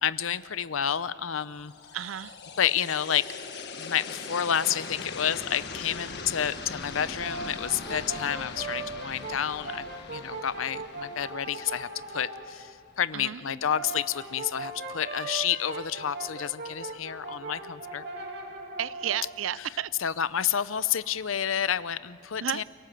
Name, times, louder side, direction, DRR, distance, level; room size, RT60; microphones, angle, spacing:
voice 1, 0.0-1.7 2.6-3.3 3.8-18.0 19.6-19.7 20.0-22.6, left 9 dB, 90° left, 16 dB, 0.7 m, -30 dB
sound 1, 1.5-12.6, left 4 dB, 55° left, 1.6 m, -41 dB
voice 2, 1.9-2.4 13.1-13.4 18.8-19.9 22.4-22.6, right 10 dB, 80° right, 19 dB, 0.5 m, -32 dB
Brass instrument, 6.9-12.5 13.4-19.3, right 3 dB, 55° right, 3.0 m, -39 dB
29.0 x 18.0 x 7.6 m, 2.2 s
head